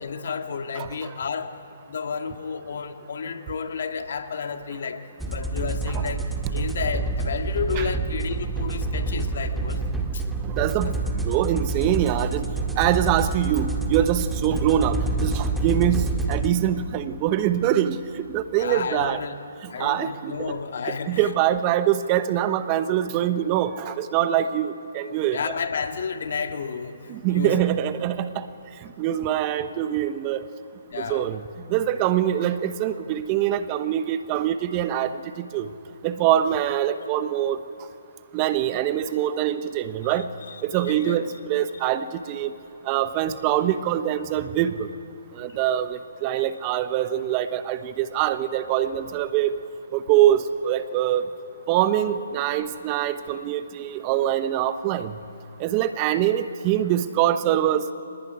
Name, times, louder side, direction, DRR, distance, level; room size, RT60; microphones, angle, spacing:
voice 1, 0.0-1.5 1.9-9.8 10.1-10.2 10.8-10.9 18.6-21.3 25.3-27.7 30.9-31.3 40.0-41.2, left 5 dB, 60° left, 6 dB, 2.0 m, -32 dB
voice 2, 0.8-1.1 7.8-7.9 10.4-12.5 12.8-19.2 19.8-20.5 20.9-25.4 27.1-28.5 29.0-30.5 31.0-31.4 31.7-35.7 36.0-37.6 38.3-40.3 40.6-42.5 42.9-44.9 45.4-49.6 49.9-51.2 51.7-55.1 55.6-57.9, right 11 dB, 25° right, 12 dB, 1.0 m, -24 dB
sound 1, 5.2-16.5, right 3 dB, 5° right, 2.0 m, -27 dB
25.0 x 19.5 x 9.5 m, 2.8 s
hypercardioid pair, 145°, 0 cm